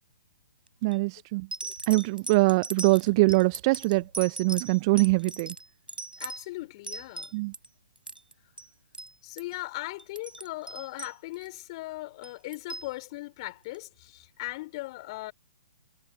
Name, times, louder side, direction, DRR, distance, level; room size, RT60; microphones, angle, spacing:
sound 1, 0.7-0.9 1.5-7.7 8.0-8.3 8.6-8.7 8.9-9.1 9.4-9.6 10.0-11.6 12.2-12.9 13.7-13.8, right 2 dB, 85° right, 7.9 m, -39 dB
voice 1, 0.8-1.5 1.9-5.5 7.3-7.5, right 25 dB, 30° right, 0.4 m, -23 dB
voice 2, 6.2-7.3 9.2-15.3, left 20 dB, 35° left, 4.5 m, -38 dB
figure-of-eight pair, 125°, 5 cm